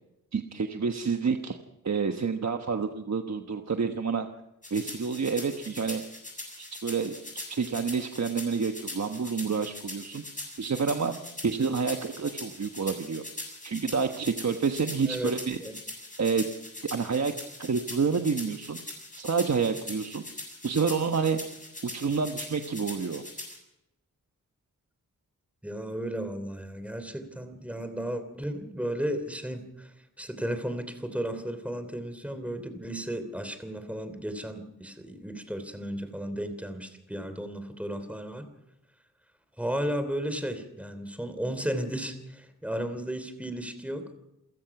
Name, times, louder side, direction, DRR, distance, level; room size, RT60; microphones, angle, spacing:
voice 1, 0.3-1.6 1.8-4.3 4.7-6.0 6.6-7.1 7.5-10.2 10.6-11.2 11.4-13.2 13.6-15.6 16.2-16.4 16.9-17.3 17.6-18.8 19.2-20.2 20.6-21.4 21.8-23.2, right 5 dB, 55° right, 5 dB, 1.2 m, -28 dB
sound 1, 4.6-23.6, left 2 dB, 25° left, 7.5 m, -41 dB
voice 2, 15.1-15.7 25.6-29.9 30.2-38.5 39.6-44.1, right 1 dB, 5° right, 9 dB, 3.0 m, -34 dB
28.5 x 16.0 x 6.0 m, 0.91 s
wide cardioid pair, 120°, 33 cm